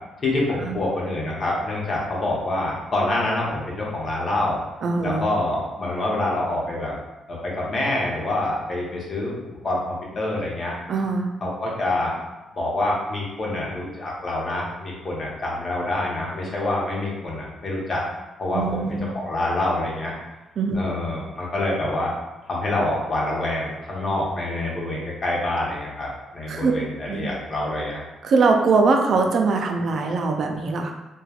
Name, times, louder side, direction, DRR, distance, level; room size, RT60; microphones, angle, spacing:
voice 1, 0.2-4.6 5.0-6.9 7.4-9.3 9.6-10.7 11.4-12.1 12.5-18.0 18.4-18.6 19.1-20.1 20.7-22.1 22.5-26.1 26.3-28.0, left 2 dB, 50° left, -4 dB, 0.9 m, -26 dB
voice 2, 4.8-5.3 10.9-11.3 18.5-19.1 20.6-20.8 26.5-26.7 27.1-27.3 28.2-30.9, right 4 dB, 60° right, 3 dB, 0.4 m, -22 dB
3.2 x 2.2 x 2.3 m, 1.0 s
cardioid pair, 80°, 0 cm